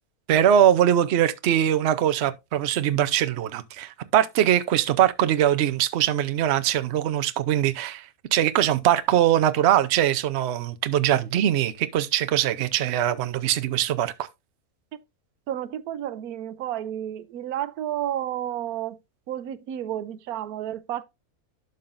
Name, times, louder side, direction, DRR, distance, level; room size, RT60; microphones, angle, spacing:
voice 1, 0.3-14.3, right 11 dB, 55° right, 0.8 m, -22 dB
voice 2, 15.5-19.0 19.3-21.0, right 11 dB, 85° right, 1.1 m, -31 dB
12.0 x 5.5 x 2.5 m
omnidirectional pair, 1.5 m